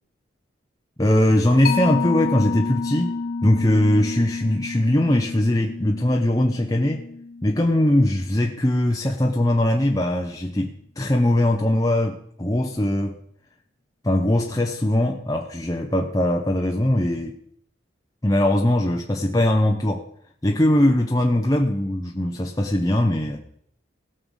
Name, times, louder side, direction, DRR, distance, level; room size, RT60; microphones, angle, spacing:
voice 1, 1.0-3.2 3.4-7.1 7.4-13.2 14.0-17.4 18.2-20.0 20.4-23.4, left 1 dB, 20° left, 1 dB, 0.8 m, -21 dB
Mallet percussion, 1.6-8.7, left 4 dB, 45° left, 1.4 m, -30 dB
17.5 x 6.7 x 5.5 m, 0.67 s
head